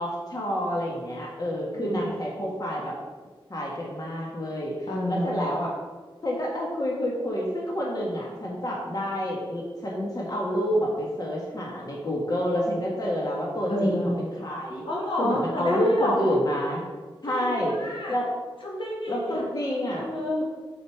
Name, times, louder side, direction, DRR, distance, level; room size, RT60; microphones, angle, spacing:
voice 1, 0.0-2.9 3.5-5.7 6.2-14.8 15.2-16.8 17.2-18.3 19.1-20.1, equal, 45° left, -3 dB, 1.7 m, -28 dB
voice 2, 1.8-2.1 4.9-5.3 13.7-14.2 14.9-16.4 17.3-18.1 18.6-19.5 19.9-20.4, left 1 dB, 65° left, -3 dB, 1.8 m, -29 dB
6.7 x 6.4 x 4.8 m, 1.4 s
wide cardioid pair, 105°, 9 cm